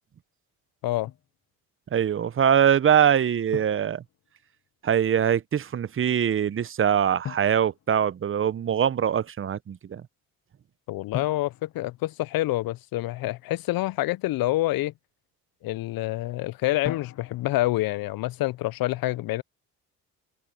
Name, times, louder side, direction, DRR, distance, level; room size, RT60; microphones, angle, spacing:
Drum, 1.1-1.3 3.5-4.7 7.2-8.6 11.1-12.8 16.8-17.8, left 10 dB, 45° left, 0.9 m, -40 dB
voice 1, 1.9-4.0 4.8-10.0, right 9 dB, 35° right, 0.7 m, -23 dB
voice 2, 10.9-14.9 15.6-19.4, left 17 dB, 70° left, 0.6 m, -27 dB
open air
supercardioid pair, 75°, 37 cm